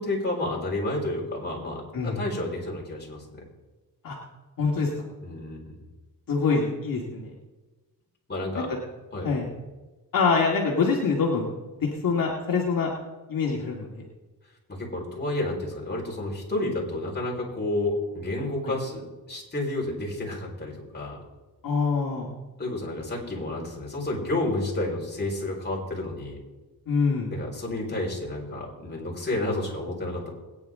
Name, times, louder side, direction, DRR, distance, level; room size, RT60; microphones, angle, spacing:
voice 1, 0.0-3.4 5.2-5.7 8.3-8.7 9.1-9.4 14.8-21.2 22.6-26.4 27.3-30.3, left 2 dB, 25° left, -3 dB, 4.6 m, -30 dB
voice 2, 4.6-4.9 6.3-7.3 8.5-8.6 9.2-9.5 10.1-11.5 11.8-12.9 13.3-14.0 18.7-18.8 21.6-22.3 26.9-27.3, left 4 dB, 60° left, -2 dB, 2.1 m, -25 dB
22.0 x 9.7 x 3.7 m, 1.2 s
cardioid pair, 100°, 38 cm